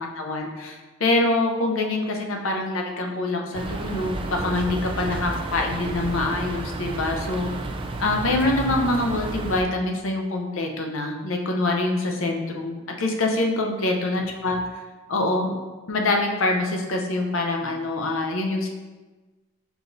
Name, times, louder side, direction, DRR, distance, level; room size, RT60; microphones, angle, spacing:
voice 1, 0.0-7.5 8.0-14.6 15.1-15.5 15.9-18.7, left 2 dB, 70° left, 2 dB, 0.6 m, -25 dB
sound 1, 3.5-9.6, right 2 dB, 25° right, 0.3 m, -31 dB
4.9 x 2.6 x 3.8 m, 1.2 s
head